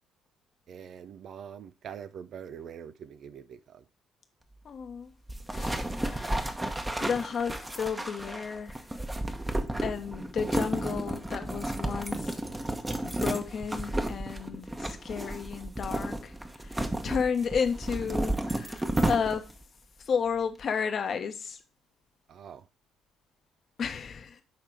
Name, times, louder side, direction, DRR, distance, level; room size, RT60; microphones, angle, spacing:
voice 1, 0.7-3.8 22.3-22.7, right 8 dB, 55° right, 0.5 m, -44 dB
voice 2, 4.6-5.1 5.5-6.4 7.0-8.8 9.8-12.4 13.0-19.4 20.1-21.6 23.8-24.4, left 6 dB, 50° left, 1.2 m, -32 dB
sound 1, 5.3-19.6, right 1 dB, 15° right, 1.2 m, -32 dB
10.0 x 3.7 x 4.8 m
hypercardioid pair, 50°, 0 cm